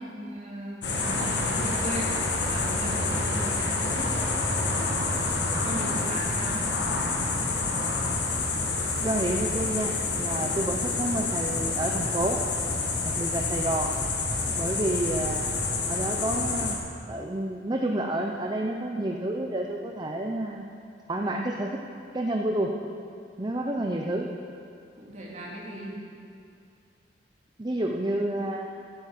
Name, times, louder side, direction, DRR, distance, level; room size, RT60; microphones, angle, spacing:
voice 1, 0.0-2.1 2.4-4.1 4.7-5.3 5.6-6.6 25.0-26.0, equal, 45° right, -4 dB, 3.0 m, -37 dB
sound 1, 0.8-16.8, left 3 dB, 80° left, 1.7 m, -28 dB
voice 2, 9.0-12.4 13.1-13.9 14.5-15.5 15.9-16.8 17.1-20.7 21.1-21.8 22.1-22.7 23.4-24.3 27.6-28.7, right 1 dB, 25° right, 1 dB, 0.7 m, -29 dB
11.5 x 9.8 x 7.4 m, 2.4 s
head